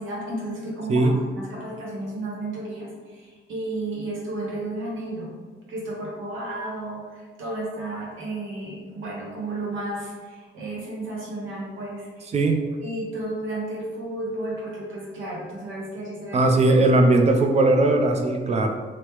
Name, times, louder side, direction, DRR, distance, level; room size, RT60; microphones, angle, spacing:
voice 1, 0.0-5.3 5.7-12.3 12.8-16.5, right 1 dB, 80° right, -3 dB, 1.0 m, -33 dB
voice 2, 12.3-12.6 16.3-18.7, right 2 dB, 35° right, 3 dB, 0.4 m, -19 dB
3.1 x 2.0 x 3.0 m, 1.5 s
cardioid pair, 90°, 20 cm